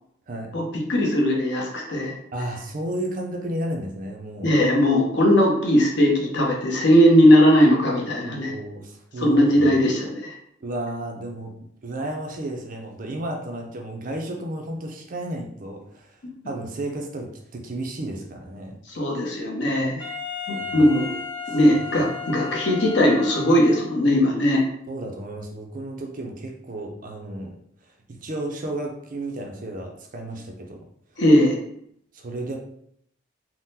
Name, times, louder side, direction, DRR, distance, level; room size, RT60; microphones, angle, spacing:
voice 1, 0.9-2.1 4.4-8.5 9.2-10.3 16.2-16.3 18.9-20.1 20.5-21.1 21.5-24.6 31.2-31.6, equal, 55° left, -1 dB, 0.7 m, -19 dB
voice 2, 2.3-4.5 8.2-9.8 10.6-11.5 11.8-16.2 16.5-18.8 20.6-20.9 21.5-21.6 24.9-27.6 28.1-30.9 32.1-32.6, right 1 dB, 40° right, 2 dB, 0.4 m, -33 dB
Wind instrument woodwind instrument, 20.0-23.9, left 5 dB, 20° left, 0.9 m, -34 dB
3.6 x 2.0 x 2.7 m, 0.69 s
head